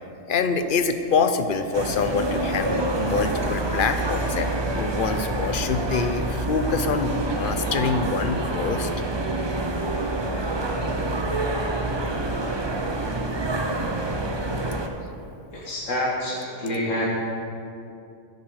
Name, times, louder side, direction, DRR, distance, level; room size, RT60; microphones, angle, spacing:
voice 1, 0.3-4.5 4.7-8.9, left 4 dB, 50° left, 8 dB, 0.8 m, -25 dB
sound 1, 1.7-14.9, right 2 dB, 25° right, 0.7 m, -27 dB
voice 2, 15.5-17.0, left 1 dB, 85° left, -5 dB, 2.1 m, -27 dB
11.0 x 9.6 x 6.4 m, 2.6 s
omnidirectional pair, 1.3 m